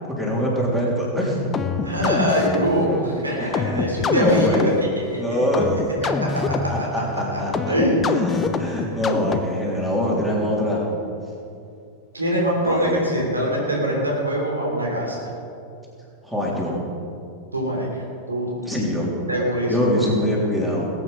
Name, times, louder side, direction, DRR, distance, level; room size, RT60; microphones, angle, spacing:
voice 1, 0.1-1.6 2.0-2.1 3.4-4.8 5.1-5.7 6.5-7.8 8.0-10.8 12.6-13.1 16.2-16.8 18.7-19.1 19.7-20.9, equal, 5° right, -4 dB, 3.8 m, -24 dB
sound 1, 1.5-9.7, left 4 dB, 20° left, 0.9 m, -26 dB
voice 2, 1.8-5.2 6.2-6.7 7.3-7.4 7.7-8.1 12.1-15.2 17.5-17.9 18.3-18.9 19.3-20.2, equal, 80° right, -1 dB, 3.4 m, -23 dB
20.5 x 9.0 x 5.4 m, 2.5 s
figure-of-eight pair, 90°, 0 cm